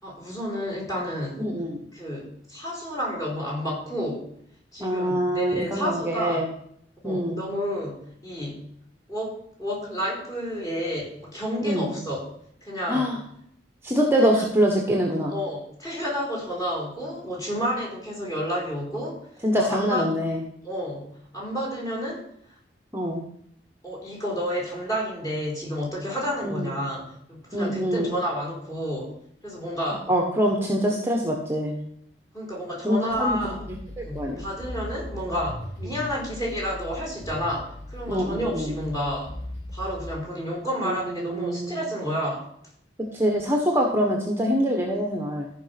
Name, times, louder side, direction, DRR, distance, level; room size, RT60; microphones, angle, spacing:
voice 1, 0.0-1.4 1.9-4.2 4.7-6.4 7.0-8.6 9.1-12.3 12.6-13.1 14.3-14.4 15.3-19.2 19.5-20.0 20.6-21.1 21.3-22.2 23.8-29.1 29.4-30.1 32.3-33.6 34.0-39.3 39.7-42.5, equal, 20° left, -3 dB, 4.4 m, -30 dB
voice 2, 1.4-1.8 4.8-6.5 7.0-7.4 11.6-12.0 12.9-13.2 13.8-15.3 19.4-20.4 22.9-23.2 26.4-26.7 27.5-28.1 30.1-31.7 32.8-33.4 34.0-34.4 38.0-38.7 40.8-41.8 43.1-45.5, equal, 15° right, 1 dB, 1.3 m, -24 dB
sound 1, 33.1-40.1, left 1 dB, 55° left, 4.8 m, -38 dB
14.0 x 5.4 x 5.9 m, 0.69 s
head